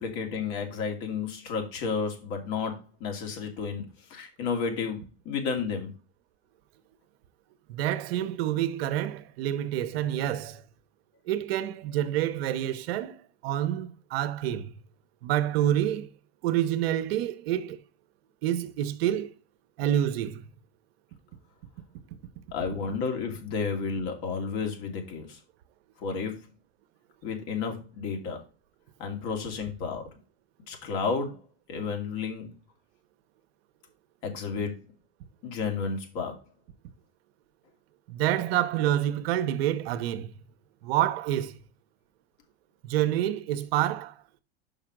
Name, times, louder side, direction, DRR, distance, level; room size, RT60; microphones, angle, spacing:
voice 1, 0.0-5.9 22.5-25.4 26.0-26.4 27.2-28.4 29.0-30.1 30.7-31.4 31.7-32.5 34.2-34.7 35.4-36.4, left 5 dB, 60° left, 2.6 m, -32 dB
voice 2, 7.7-10.6 11.3-14.7 15.2-16.1 16.4-17.8 18.4-19.3 19.8-20.4 38.1-40.3 40.8-41.6 42.8-44.1, right 12 dB, 70° right, 0.9 m, -28 dB
5.5 x 4.9 x 5.9 m
hypercardioid pair, 110°, 31 cm